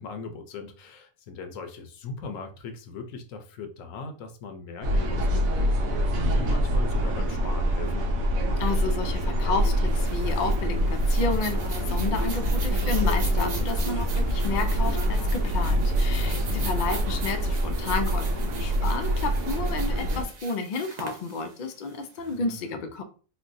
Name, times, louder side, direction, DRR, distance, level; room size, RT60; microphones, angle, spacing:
voice 1, 0.0-8.1 16.3-16.8 22.2-22.8, left 4 dB, 75° left, 1.0 m, -39 dB
sound 1, 4.8-20.2, equal, 85° right, 1.2 m, -25 dB
voice 2, 8.6-23.0, left 3 dB, 60° left, 0.5 m, -31 dB
sound 2, 9.9-22.3, right 4 dB, 50° right, 0.5 m, -42 dB
4.2 x 2.2 x 2.6 m
omnidirectional pair, 1.4 m